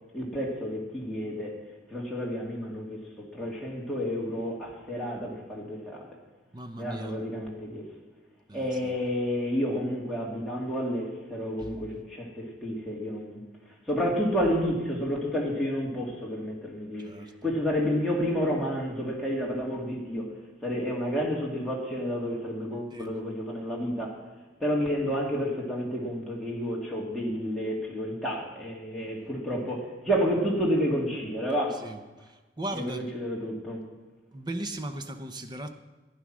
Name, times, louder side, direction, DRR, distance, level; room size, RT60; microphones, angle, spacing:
voice 1, 0.1-1.6 1.9-6.1 6.8-7.8 8.5-13.4 13.9-20.3 20.6-24.2 24.6-31.8 32.7-33.8, equal, ahead, -5 dB, 2.7 m, -30 dB
voice 2, 6.5-7.2 8.5-8.9 11.6-11.7 17.0-17.3 22.9-23.2 29.0-29.2 31.8-33.1 34.3-35.7, right 1 dB, 25° right, 7 dB, 0.8 m, -38 dB
15.0 x 9.9 x 6.2 m, 1.2 s
head